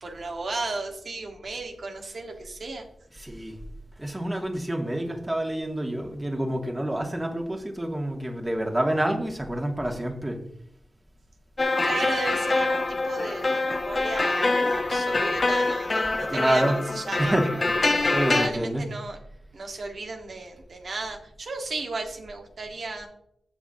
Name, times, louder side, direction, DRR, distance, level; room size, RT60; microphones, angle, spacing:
voice 1, 0.0-2.9 11.8-17.7 18.3-19.2 19.5-23.1, right 3 dB, 70° right, 3 dB, 1.7 m, -34 dB
voice 2, 3.2-3.6 4.0-10.4 16.3-16.8 17.2-17.6 18.1-18.9, right 1 dB, 25° right, 2 dB, 2.3 m, -27 dB
sound 1, 11.6-18.5, left 2 dB, 45° left, 1.2 m, -25 dB
16.0 x 6.0 x 2.9 m, 0.72 s
cardioid pair, 50°, 0 cm